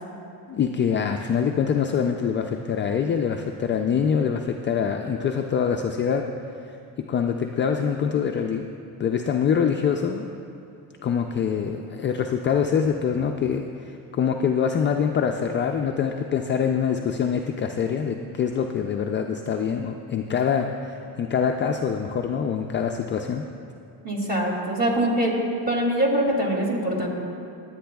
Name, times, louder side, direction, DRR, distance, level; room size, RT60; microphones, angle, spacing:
voice 1, 0.5-6.3 7.1-8.7 9.0-10.3 11.0-13.7 14.1-23.5, left 7 dB, 30° left, 4 dB, 0.4 m, -24 dB
voice 2, 24.0-25.3 25.7-27.1, right 1 dB, 25° right, -1 dB, 2.4 m, -23 dB
22.0 x 8.7 x 2.3 m, 2.7 s
cardioid pair, 120°, 40 cm